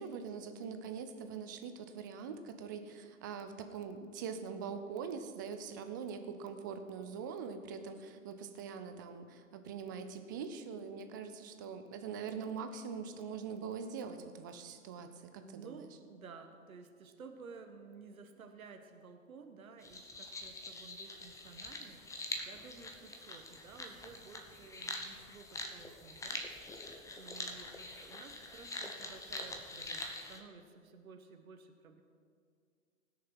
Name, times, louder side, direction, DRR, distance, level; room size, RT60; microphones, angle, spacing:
voice 1, 0.0-15.9, right 6 dB, 15° right, 8 dB, 0.3 m, -43 dB
voice 2, 15.3-22.0 22.5-26.4 27.2-32.0, right 5 dB, 75° right, 6 dB, 1.3 m, -54 dB
sound 1, 19.8-30.4, left 2 dB, 5° left, 0.9 m, -44 dB
18.5 x 6.6 x 6.1 m, 2.1 s
hypercardioid pair, 120°, 42 cm